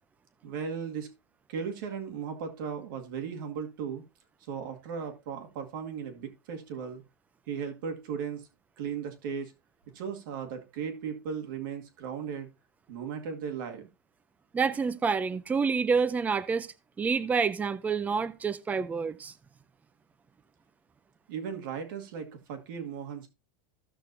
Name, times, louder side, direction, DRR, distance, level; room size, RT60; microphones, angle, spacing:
voice 1, 0.4-1.1 1.5-4.0 4.4-7.0 7.5-8.5 8.8-9.5 9.9-12.5 12.9-13.9 21.3-23.3, right 7 dB, 70° right, 2.2 m, -36 dB
voice 2, 14.5-16.7 17.0-19.3, right 5 dB, 15° right, 0.5 m, -28 dB
15.0 x 6.3 x 2.7 m
supercardioid pair, 135°, 11 cm